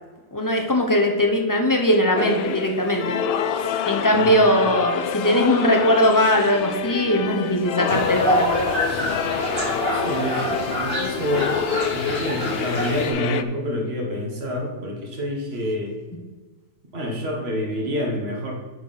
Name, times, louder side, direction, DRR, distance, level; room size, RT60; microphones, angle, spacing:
voice 1, 0.3-3.1 3.9-8.7, equal, 15° left, 2 dB, 0.9 m, -20 dB
sound 1, 2.2-13.4, left 8 dB, 75° left, 0.5 m, -27 dB
sound 2, 7.9-13.1, right 1 dB, 60° right, 2.7 m, -27 dB
voice 2, 9.9-11.5 11.9-15.9 16.9-18.5, equal, 45° right, 0 dB, 1.8 m, -28 dB
8.7 x 4.9 x 5.7 m, 1.4 s
omnidirectional pair, 1.5 m